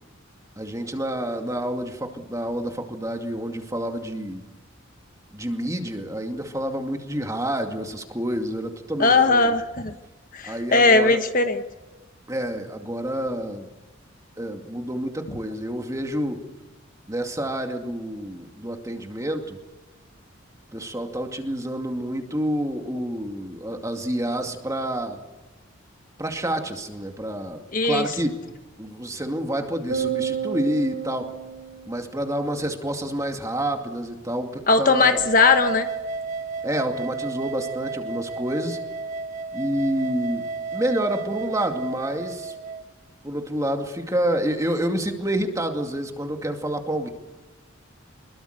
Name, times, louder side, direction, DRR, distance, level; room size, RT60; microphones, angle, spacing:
voice 1, 0.6-4.4 5.3-9.5 10.4-11.2 12.3-13.7 14.4-16.4 17.1-19.6 20.7-25.2 26.2-28.3 28.8-31.3 31.9-35.2 36.6-38.8 39.5-42.5 43.2-47.1, right 1 dB, 15° right, 4 dB, 2.3 m, -28 dB
voice 2, 9.0-9.9 10.3-11.6 27.7-28.0 34.7-35.9, left 3 dB, 40° left, 7 dB, 1.2 m, -19 dB
sound 1, 29.9-32.4, right 7 dB, 70° right, 4.3 m, -30 dB
sound 2, 35.1-42.8, right 4 dB, 35° right, 2.0 m, -32 dB
25.5 x 22.0 x 6.7 m, 1.1 s
head